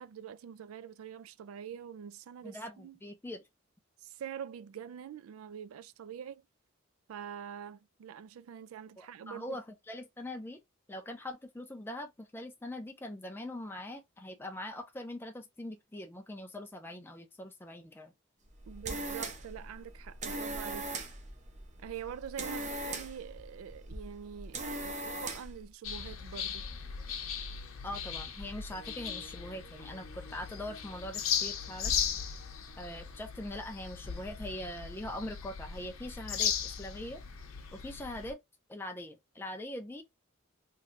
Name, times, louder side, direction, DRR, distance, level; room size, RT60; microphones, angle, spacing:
voice 1, 0.0-3.0 4.0-6.4 7.1-9.6 18.7-20.9 21.8-26.6, right 8 dB, 85° right, 0.3 m, -45 dB
voice 2, 2.4-3.4 9.0-10.6 10.9-18.1 27.8-31.9 32.8-37.2 37.7-38.4 38.7-40.0, left 1 dB, 10° left, 0.4 m, -42 dB
sound 1, 18.5-25.6, right 2 dB, 35° right, 0.7 m, -40 dB
sound 2, 25.8-38.3, left 7 dB, 85° left, 0.7 m, -37 dB
sound 3, 28.7-34.7, equal, 55° left, 0.8 m, -57 dB
3.2 x 2.7 x 2.4 m
head